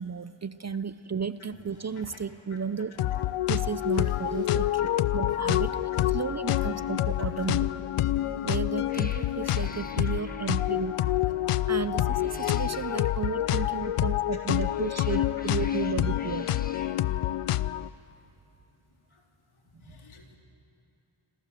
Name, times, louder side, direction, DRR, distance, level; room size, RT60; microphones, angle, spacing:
voice 1, 0.0-2.9 3.5-7.7 8.4-11.0 11.7-16.5, right 6 dB, 35° right, 15 dB, 0.7 m, -33 dB
sound 1, 1.5-3.3 3.7-4.7 4.9-5.0 5.3-6.2 6.7-8.7 8.9-10.1, left 2 dB, 50° left, 5.5 m, -49 dB
sound 2, 3.0-17.9, left 13 dB, 90° left, 0.7 m, -27 dB
Cat, 8.2-8.4 8.9-10.9 12.0-13.1 14.4-17.0, left 2 dB, 15° left, 1.5 m, -49 dB
voice 2, 15.1-15.5 15.8-15.9 16.9-17.1 17.4-17.6 18.2-18.3 19.1-19.3 19.8-20.4, left 3 dB, 75° left, 0 dB, 4.1 m, -51 dB
27.5 x 27.0 x 7.6 m, 2.8 s
cardioid pair, 75°, 50 cm